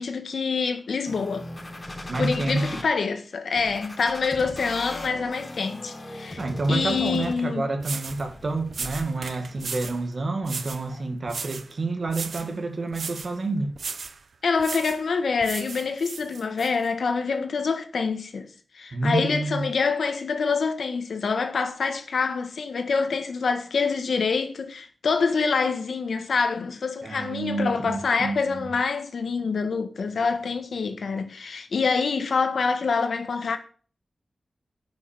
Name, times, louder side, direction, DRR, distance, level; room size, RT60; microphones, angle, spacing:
voice 1, 0.0-1.5 2.2-6.4 6.7-7.6 14.4-18.5 18.7-33.6, left 5 dB, 85° left, 1.6 m, -26 dB
sound 1, 1.1-2.8 3.6-7.6 8.1-9.0, left 1 dB, 25° left, 3.7 m, -39 dB
voice 2, 2.1-2.8 6.4-13.7 18.9-19.7 27.0-28.8, right 3 dB, 50° right, 2.1 m, -28 dB
sound 2, 7.4-7.5 7.8-8.2 8.7-10.0 10.4-10.9 11.3-11.7 12.1-12.5 12.9-13.3 13.8-14.2 14.6-15.0 15.4-16.7, right 5 dB, 75° right, 0.9 m, -36 dB
9.8 x 6.3 x 7.3 m
wide cardioid pair, 105°, 0 cm